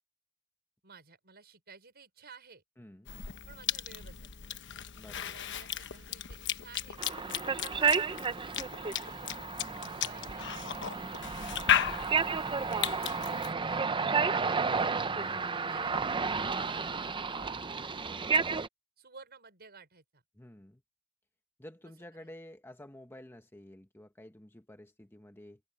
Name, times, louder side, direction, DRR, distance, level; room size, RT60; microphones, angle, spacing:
voice 1, 0.8-2.6 3.5-4.7 5.2-7.0 7.6-9.3 9.8-12.3 12.8-18.6 19.0-20.2 22.2-22.3, right 4 dB, 50° right, 5.7 m, -56 dB
voice 2, 2.8-3.1 4.9-5.4 7.2-7.5 9.6-10.0 12.5-13.0 20.3-20.8 21.6-25.6, left 1 dB, 10° left, 1.1 m, -51 dB
Cough / Chewing mastication, 3.1-13.5, left 10 dB, 55° left, 1.1 m, -35 dB
sound 1, 7.0-18.7, right 5 dB, 20° right, 0.6 m, -32 dB
head